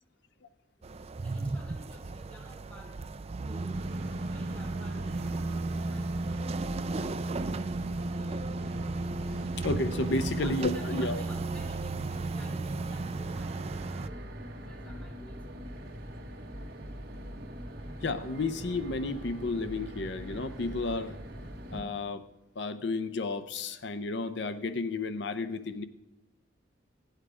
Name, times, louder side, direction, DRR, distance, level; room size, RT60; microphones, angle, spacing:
sound 1, 0.8-14.1, right 3 dB, 30° right, 0.4 m, -34 dB
voice 1, 1.2-3.0 3.4-4.0 4.2-5.3 5.9-7.1 9.8-15.6, equal, 5° left, -3 dB, 2.9 m, -52 dB
sound 2, 3.7-21.8, equal, 55° right, 1.5 m, -43 dB
voice 2, 9.6-11.2 18.0-21.2 21.7-22.2 22.6-25.9, left 3 dB, 60° left, 11 dB, 0.6 m, -32 dB
16.5 x 9.1 x 4.9 m, 0.98 s
head